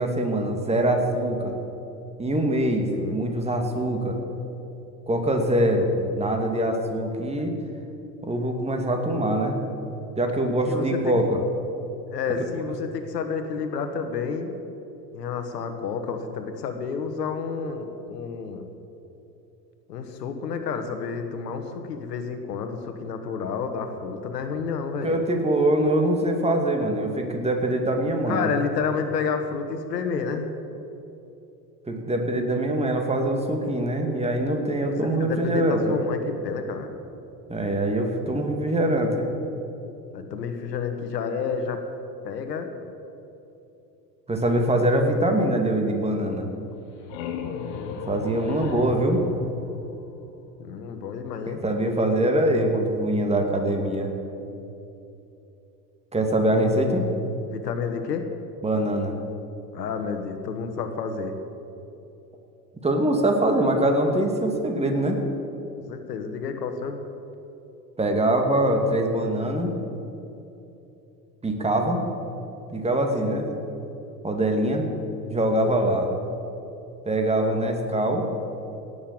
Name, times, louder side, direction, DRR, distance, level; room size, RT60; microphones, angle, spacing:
voice 1, 0.0-1.5 2.2-4.2 5.1-7.5 8.2-9.6 10.2-11.4 25.0-28.5 31.9-36.0 37.5-39.3 44.3-46.5 47.9-49.2 51.5-54.1 56.1-57.1 58.6-59.1 62.8-65.2 68.0-69.7 71.4-72.0 72.7-73.5 74.2-74.9 75.3-76.1 77.0-78.3, right 1 dB, 10° right, 3 dB, 2.3 m, -23 dB
voice 2, 10.7-11.1 12.1-14.5 15.1-18.7 19.9-25.1 28.3-30.5 34.8-36.9 40.1-41.8 42.2-42.7 50.6-51.6 57.5-58.2 59.7-61.4 65.8-67.0 73.2-73.4, left 5 dB, 75° left, 7 dB, 1.6 m, -30 dB
sound 1, 46.7-50.4, left 6 dB, 55° left, 1.5 m, -36 dB
17.5 x 7.1 x 8.7 m, 2.9 s
figure-of-eight pair, 75°, 49 cm